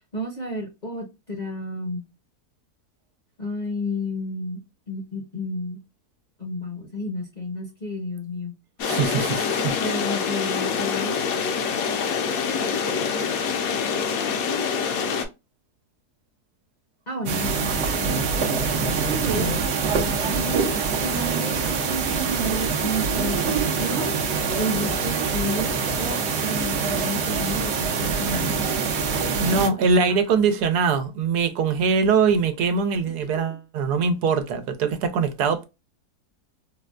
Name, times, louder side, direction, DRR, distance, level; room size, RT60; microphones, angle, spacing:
voice 1, 0.1-2.1 3.4-4.6 4.9-5.8 6.4-8.6 9.8-11.2 12.7-13.3 17.1-18.2 18.9-19.6 20.2-24.1 24.5-28.9 29.6-29.7 30.1-30.2, left 1 dB, 40° left, 0.7 m, -31 dB
sound 1, 8.8-15.2, left 6 dB, 70° left, 1.1 m, -25 dB
voice 2, 8.8-9.8 13.8-13.9 19.1-19.5 29.4-35.6, right 5 dB, 85° right, 1.2 m, -22 dB
sound 2, 17.3-29.7, right 5 dB, 60° right, 0.8 m, -25 dB
4.0 x 2.2 x 2.3 m
omnidirectional pair, 1.7 m